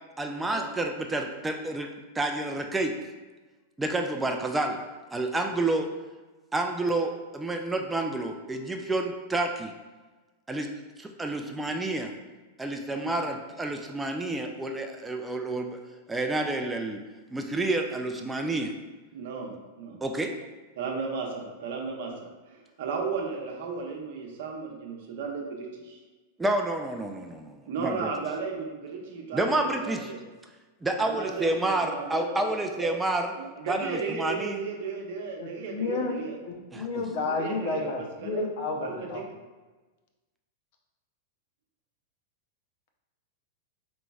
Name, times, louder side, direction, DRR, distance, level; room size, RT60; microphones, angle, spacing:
voice 1, 0.2-1.9 2.1-2.9 3.8-4.8 5.1-5.9 6.5-9.7 10.5-10.7 11.0-12.1 12.6-15.8 16.1-17.0 17.3-18.7 20.0-20.3 26.4-28.1 29.3-30.1 30.8-33.3 33.7-34.6 36.7-37.0, right 2 dB, 10° right, 3 dB, 0.3 m, -29 dB
voice 2, 19.1-19.5 19.8-20.0 20.8-26.0 27.6-30.2 31.0-32.9 33.4-36.4 37.3-38.4 38.8-39.2, right 5 dB, 65° right, 1 dB, 0.7 m, -35 dB
voice 3, 35.4-36.1 36.4-39.2, left 3 dB, 60° left, 2 dB, 0.6 m, -31 dB
3.9 x 3.0 x 2.3 m, 1.2 s
hypercardioid pair, 110°, 0 cm